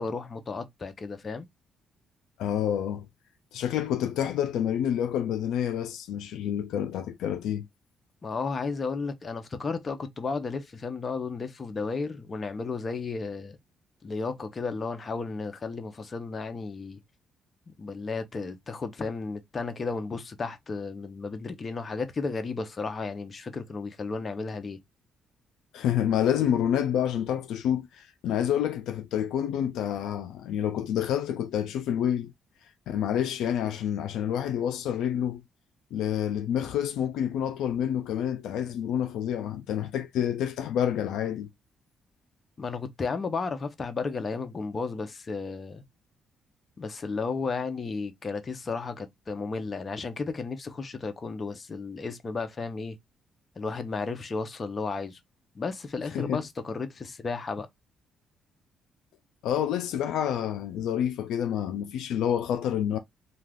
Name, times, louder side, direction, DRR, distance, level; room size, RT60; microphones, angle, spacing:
voice 1, 0.0-1.5 8.2-13.6 14.0-17.0 17.7-24.8 42.6-45.8 46.8-53.0 53.6-55.2 55.5-57.7, left 4 dB, 35° left, 0.6 m, -33 dB
voice 2, 2.4-3.1 3.5-7.7 25.7-32.3 32.9-35.4 35.9-41.5 56.1-56.4 59.4-63.0, left 9 dB, 85° left, 0.3 m, -28 dB
2.3 x 2.3 x 3.2 m
cardioid pair, 90°, 0 cm